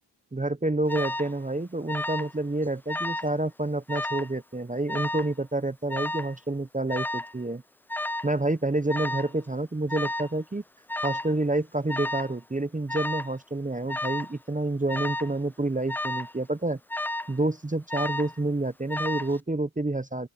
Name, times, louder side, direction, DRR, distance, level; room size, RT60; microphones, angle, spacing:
voice 1, 0.3-7.6 8.2-10.6 11.0-16.8 17.3-20.3, right 2 dB, 15° right, 0.8 m, -28 dB
Alarm, 0.9-1.3 1.9-2.4 2.6-3.3 3.9-4.3 4.9-5.3 5.9-6.3 6.9-7.3 7.9-8.3 8.9-9.3 9.9-10.3 10.9-11.3 11.9-12.3 12.9-13.3 13.9-14.3 14.9-15.3 15.9-16.3 16.9-17.4 17.9-18.4 18.9-19.4, left 1 dB, 5° left, 0.3 m, -32 dB
open air
cardioid pair, 50°, 46 cm